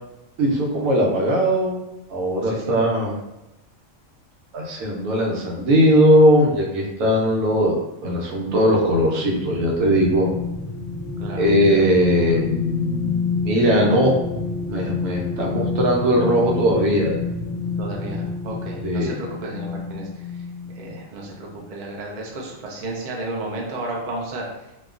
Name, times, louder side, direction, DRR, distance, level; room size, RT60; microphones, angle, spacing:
voice 1, 0.4-1.8 2.1-3.2 4.5-7.7 8.0-10.3 11.4-14.2 14.6-17.2 18.8-19.1, equal, 85° right, -2 dB, 1.1 m, -19 dB
voice 2, 2.4-2.8 11.2-11.9 17.8-20.1 20.8-24.5, right 2 dB, 60° right, -1 dB, 0.5 m, -33 dB
sound 1, 8.3-21.0 21.5-21.6, left 4 dB, 75° left, 0.3 m, -29 dB
2.8 x 2.4 x 2.4 m, 0.95 s
omnidirectional pair, 1.4 m